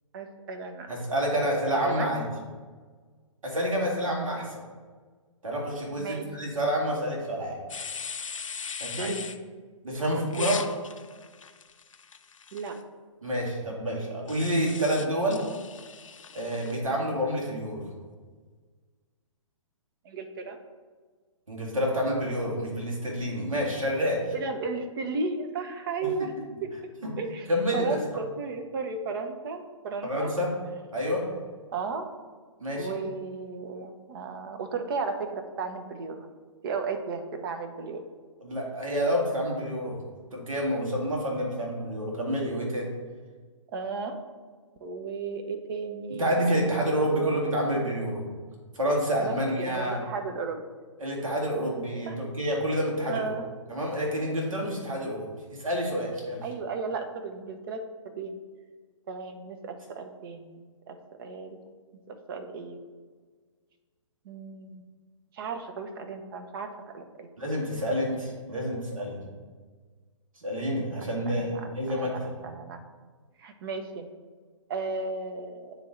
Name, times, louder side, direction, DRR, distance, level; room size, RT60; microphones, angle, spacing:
voice 1, 0.1-0.9 1.3-1.5 1.8-2.2 6.0-6.2 9.0-9.2 10.4-10.5 12.5-12.8 20.0-20.6 24.3-26.3 26.6-26.7 27.2-30.3 31.7-32.1 32.7-36.3 36.6-38.0 43.7-44.2 44.8-47.3 49.2-50.6 52.1-52.2 53.1-53.4 56.4-58.4 59.1-61.6 62.1-62.8 64.2-64.8 65.3-67.3 71.0-72.2 72.4-72.8 73.4-74.1 74.7-75.8, right 4 dB, 45° right, 6 dB, 0.7 m, -35 dB
voice 2, 0.9-2.3 3.4-4.6 5.4-7.6 8.8-9.2 9.8-10.6 13.2-15.4 16.3-17.9 21.5-24.2 26.0-26.1 27.0-27.2 27.5-28.0 30.0-30.5 30.9-31.2 32.6-33.0 38.4-40.0 40.3-42.9 46.2-48.2 48.7-50.0 51.0-53.3 53.7-55.3 55.6-56.4 67.4-69.2 70.4-72.3, equal, 80° right, -2 dB, 1.9 m, -28 dB
sound 1, 7.7-9.4 10.3-12.8 14.3-16.8, left 6 dB, 75° left, 0.5 m, -39 dB
9.2 x 3.2 x 3.7 m, 1.5 s
figure-of-eight pair, 125°, 17 cm